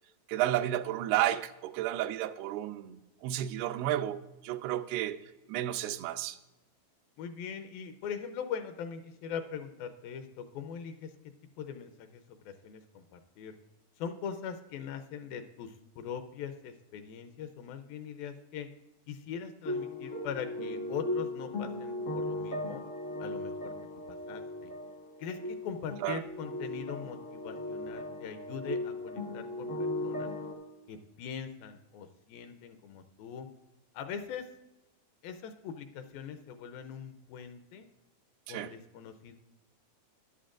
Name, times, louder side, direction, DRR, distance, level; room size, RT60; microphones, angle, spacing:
voice 1, 0.3-5.2 5.5-6.4 26.0-26.2 38.5-38.7, right 13 dB, 85° right, 9 dB, 2.6 m, -32 dB
voice 2, 7.2-11.1 11.6-13.5 14.0-18.7 19.1-22.8 23.2-23.7 24.1-24.7 25.2-29.7 30.0-30.3 30.9-33.5 33.9-34.5 35.2-37.9 38.5-39.4, left 7 dB, 80° left, 8 dB, 2.3 m, -41 dB
sound 1, 19.6-30.5, left 1 dB, 55° left, 0.7 m, -37 dB
14.0 x 11.0 x 2.5 m, 1.0 s
omnidirectional pair, 4.5 m